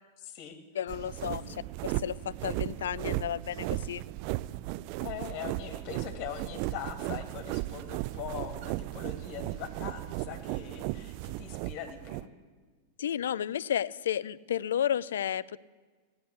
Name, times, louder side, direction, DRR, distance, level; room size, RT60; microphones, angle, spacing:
voice 1, 0.2-0.6 1.3-1.6 5.0-12.3, left 9 dB, 45° left, 7 dB, 2.3 m, -42 dB
voice 2, 0.8-4.0 13.0-15.6, left 10 dB, 70° left, 20 dB, 0.4 m, -32 dB
sound 1, 0.9-12.3, right 18 dB, 50° right, 0.4 m, -36 dB
16.5 x 10.0 x 8.4 m, 1.4 s
figure-of-eight pair, 95°, 0 cm